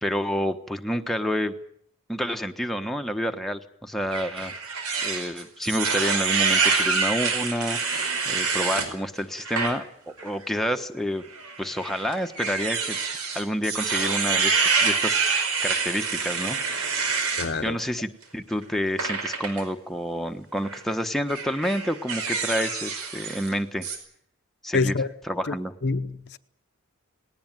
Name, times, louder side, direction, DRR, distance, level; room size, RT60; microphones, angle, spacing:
voice 1, 0.0-1.6 2.1-4.5 5.0-11.2 11.6-13.0 13.3-14.6 14.8-16.9 17.6-23.9 24.6-25.0 25.3-25.7, equal, ahead, 1.2 m, -29 dB
sound 1, 4.1-8.9 9.4-9.7 10.2-10.3 11.3-17.5 19.0-19.6 20.6-20.8 21.3-23.5 23.8-24.0, right 5 dB, 85° right, 5.0 m, -26 dB
voice 2, 17.4-17.8 24.7-25.1 25.5-25.6 25.8-26.4, left 4 dB, 50° left, 0.8 m, -26 dB
19.5 x 18.5 x 9.1 m
head